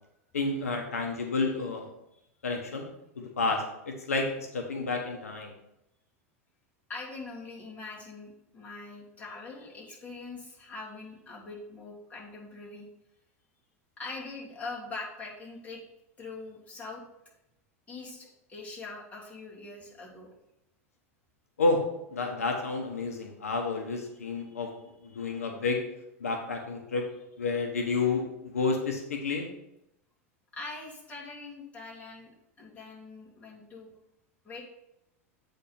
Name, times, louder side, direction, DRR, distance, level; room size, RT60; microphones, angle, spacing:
voice 1, 0.3-1.9 2.4-2.9 3.2-5.5 21.6-21.8 22.1-24.7 25.0-25.8 26.2-27.0 27.4-29.5, left 3 dB, 85° left, 3 dB, 1.0 m, -30 dB
voice 2, 6.9-12.9 14.0-15.8 16.2-17.0 17.9-20.3 24.1-24.6 25.0-25.4 30.5-32.3 32.6-33.9 34.4-34.7, left 3 dB, 20° left, -4 dB, 2.8 m, -43 dB
8.3 x 3.5 x 5.7 m, 0.84 s
hypercardioid pair, 95°, 8 cm